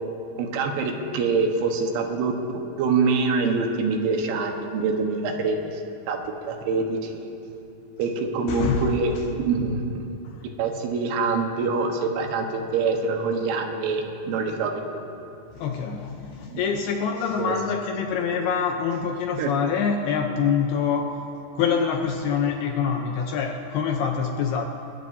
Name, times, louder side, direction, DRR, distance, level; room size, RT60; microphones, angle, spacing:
voice 1, 0.4-2.4 2.8-5.8 6.1-7.3 8.0-9.1 9.4-10.0 10.6-15.0 16.5-16.6 17.4-17.6 19.4-19.5, right 4 dB, 85° right, 3 dB, 3.6 m, -25 dB
voice 2, 8.5-9.2 10.3-10.4 15.5-21.2 21.6-24.7, left 6 dB, 75° left, 3 dB, 2.4 m, -25 dB
24.5 x 21.0 x 2.7 m, 2.8 s
omnidirectional pair, 5.2 m